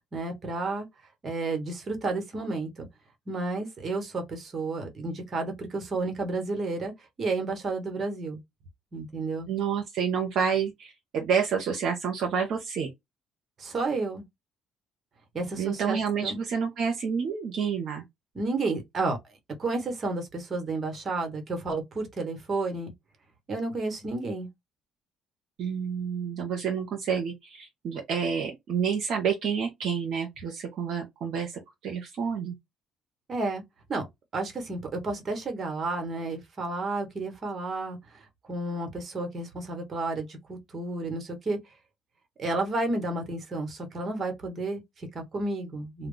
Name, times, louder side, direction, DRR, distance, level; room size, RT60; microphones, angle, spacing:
voice 1, 0.1-0.9 1.2-2.9 3.3-6.9 7.2-8.4 8.9-9.5 13.6-14.2 15.3-16.4 18.3-19.2 19.6-22.9 23.5-24.5 33.3-33.6 33.9-34.1 34.3-38.0 38.5-41.6 42.4-46.1, right 3 dB, 45° right, 1.0 m, -31 dB
voice 2, 9.5-12.9 15.6-18.0 25.6-32.6, right 6 dB, 70° right, 0.6 m, -29 dB
2.2 x 2.0 x 3.6 m
supercardioid pair, 70°, 0 cm